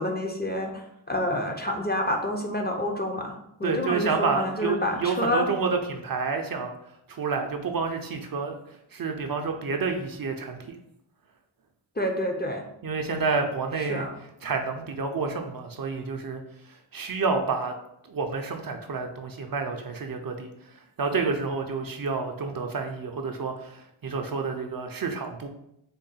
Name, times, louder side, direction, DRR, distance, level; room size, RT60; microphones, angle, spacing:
voice 1, 0.0-5.5 12.0-12.6 13.8-14.1, left 1 dB, 20° left, 2 dB, 0.4 m, -28 dB
voice 2, 3.6-6.7 7.1-10.6 12.8-14.1 14.4-17.7 18.1-25.5, right 4 dB, 50° right, 4 dB, 0.5 m, -29 dB
3.7 x 2.1 x 3.9 m, 0.78 s
wide cardioid pair, 80°, 47 cm